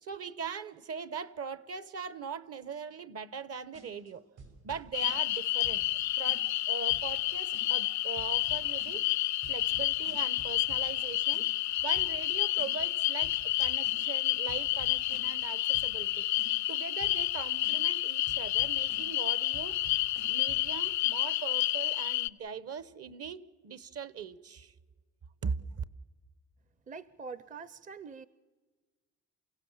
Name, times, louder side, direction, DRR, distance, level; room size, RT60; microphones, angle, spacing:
voice 1, 0.0-4.2 4.6-9.0 9.5-11.5 11.8-16.3 16.7-19.8 20.3-24.7 25.4-25.8, right 6 dB, 50° right, 17 dB, 1.0 m, -40 dB
sound 1, 3.7-4.1 4.4-5.4 5.6-6.0 6.3-6.6 6.9-7.2 7.5-7.9 8.2-9.1 9.4-11.0 11.3-11.7 11.9-12.3 12.6-12.9 13.2-13.6 13.8-14.2 14.5-15.5 15.7-16.1 16.4-16.7 17.0-17.4 17.6-18.0 18.3-19.2 19.5-20.7, right 4 dB, 80° right, 7.3 m, -51 dB
sound 2, 4.9-22.3, left 16 dB, 65° left, 0.6 m, -30 dB
voice 2, 26.9-28.3, right 5 dB, 25° right, 17 dB, 0.6 m, -44 dB
28.5 x 16.0 x 7.2 m, 1.4 s
cardioid pair, 90°, 30 cm